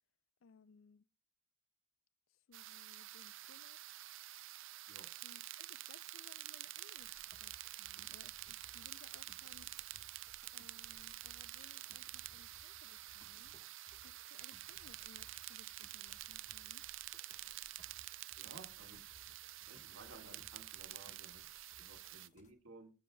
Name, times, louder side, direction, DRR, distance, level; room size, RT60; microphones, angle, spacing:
voice 1, 0.4-1.1 2.3-3.8 5.2-9.7 10.5-13.6 14.0-16.9, left 5 dB, 70° left, 0.4 m, -64 dB
sound 1, 2.5-22.3, right 16 dB, 65° right, 0.4 m, -49 dB
sound 2, 7.0-22.5, left 1 dB, 35° left, 1.3 m, -66 dB
voice 2, 18.3-19.0 19.7-22.9, right 2 dB, 80° right, 2.1 m, -57 dB
23.0 x 7.7 x 2.3 m
head